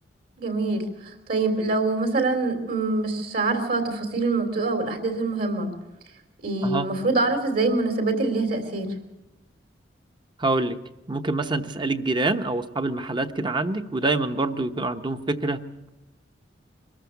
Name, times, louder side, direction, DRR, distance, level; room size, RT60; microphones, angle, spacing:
voice 1, 0.4-5.7 6.4-8.9, right 3 dB, 60° right, 6 dB, 3.3 m, -25 dB
voice 2, 10.4-10.8 11.1-15.6, right 2 dB, 25° right, 9 dB, 0.9 m, -26 dB
23.5 x 14.0 x 8.3 m, 0.98 s
head